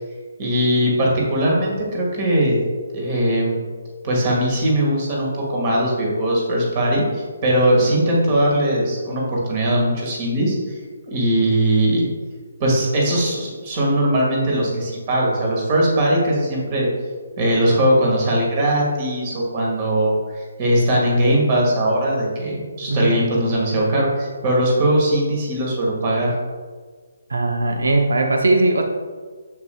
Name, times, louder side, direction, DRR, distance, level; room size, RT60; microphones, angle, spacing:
voice 1, 0.4-2.6 2.9-3.5 4.0-10.8 11.1-12.1 12.6-16.9 17.4-26.3, right 1 dB, 30° right, -3 dB, 1.6 m, -20 dB
voice 2, 22.9-23.2 27.3-28.8, right 2 dB, 90° right, 3 dB, 0.6 m, -19 dB
6.8 x 6.7 x 2.2 m, 1.5 s
hypercardioid pair, 165°, 0 cm